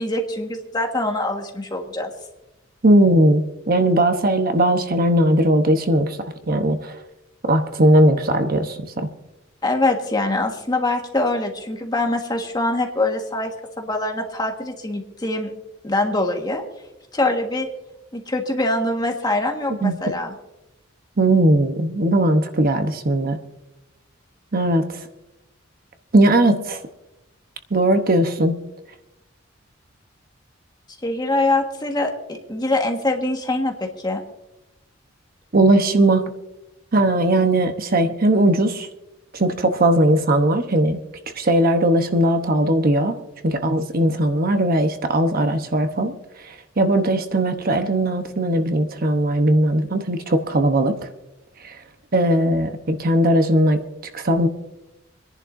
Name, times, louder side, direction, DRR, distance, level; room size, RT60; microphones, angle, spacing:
voice 1, 0.0-2.1 9.6-15.5 15.8-16.6 17.1-17.7 18.1-20.3 31.0-34.2, left 2 dB, 20° left, 3 dB, 1.5 m, -23 dB
voice 2, 2.8-6.2 6.5-6.9 7.5-9.1 19.8-20.0 21.2-23.4 24.5-24.9 26.1-26.8 27.7-28.6 35.5-36.2 36.9-38.9 39.3-41.0 41.4-43.2 43.4-46.1 46.8-50.9 51.6-51.7 52.1-53.8 54.1-54.5, right 1 dB, 50° right, 7 dB, 0.9 m, -18 dB
27.5 x 11.0 x 2.6 m, 0.93 s
head